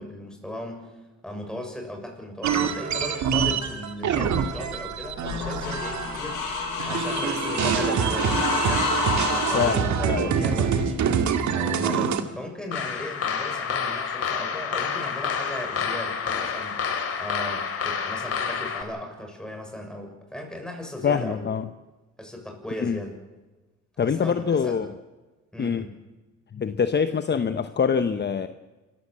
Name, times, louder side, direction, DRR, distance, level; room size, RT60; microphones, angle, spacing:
voice 1, 0.0-6.4 6.8-11.1 11.5-21.5 22.2-23.2 24.0-24.8 25.5-25.9, left 1 dB, ahead, 3 dB, 6.7 m, -37 dB
sound 1, 2.4-6.5 6.8-12.2, right 6 dB, 70° right, 2.0 m, -25 dB
sound 2, 4.4-9.7, left 5 dB, 85° left, 6.0 m, -29 dB
voice 2, 9.5-10.3 21.0-21.6 22.8-23.0 24.0-24.9 25.6-25.8 26.5-28.5, left 6 dB, 35° left, 10 dB, 0.9 m, -24 dB
sound 3, 12.7-18.8, left 6 dB, 50° left, 3.1 m, -29 dB
26.5 x 15.0 x 7.6 m, 1.2 s
cardioid pair, 90°, 30 cm